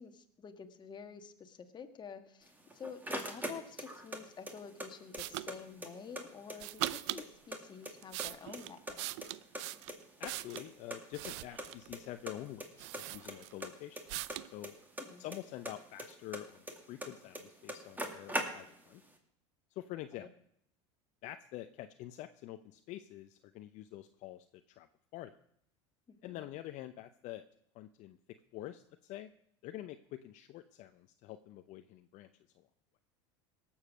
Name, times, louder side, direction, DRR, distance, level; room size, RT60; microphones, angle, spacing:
voice 1, 0.0-9.1 15.0-15.2 20.1-20.3 26.1-26.4, left 6 dB, 30° left, 8 dB, 1.5 m, -49 dB
sound 1, 2.5-4.2 4.5-5.6 5.8-5.9 6.2-7.6 7.8-8.6 8.9-10.3 10.6-10.7 10.9-11.0 11.2-11.3 11.6-12.0 12.3-12.7 12.9-15.4 15.6-17.1 17.3-17.4 17.7-18.9, right 1 dB, 10° right, 2.2 m, -40 dB
sound 2, 5.2-5.5 6.6-7.3 7.8-10.7 11.1-11.9 12.5-12.6 12.8-13.7 14.1-14.5, right 18 dB, 70° right, 0.5 m, -41 dB
voice 2, 10.2-14.0 14.4-14.7 15.2-19.0 19.7-20.3 21.2-24.9 25.1-25.3 26.2-27.4 27.7-28.2 28.5-29.3 29.6-32.3 32.6-32.7, left 14 dB, 55° left, 9 dB, 0.7 m, -46 dB
18.0 x 7.3 x 6.2 m, 0.72 s
hypercardioid pair, 95°, 15 cm